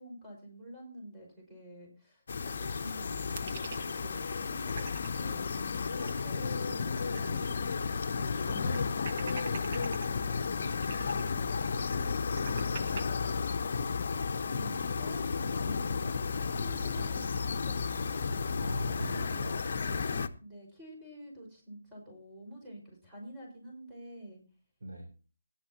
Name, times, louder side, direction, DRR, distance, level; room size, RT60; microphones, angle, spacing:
voice 1, 0.0-5.5 5.9-7.8 8.1-12.3 14.4-18.3 20.4-24.4, equal, 10° right, -4 dB, 5.3 m, -49 dB
sound 1, 2.3-20.3, left 5 dB, 55° left, 0.9 m, -33 dB
sound 2, 3.4-5.1 5.5-5.6 5.8-7.6 7.9-8.0 8.5-10.1 10.7-13.0, right 5 dB, 45° right, 1.0 m, -44 dB
voice 2, 18.6-20.1 24.8-25.1, right 2 dB, 75° right, 1 dB, 4.0 m, -44 dB
17.0 x 10.5 x 3.0 m, 0.35 s
hypercardioid pair, 160°, 0 cm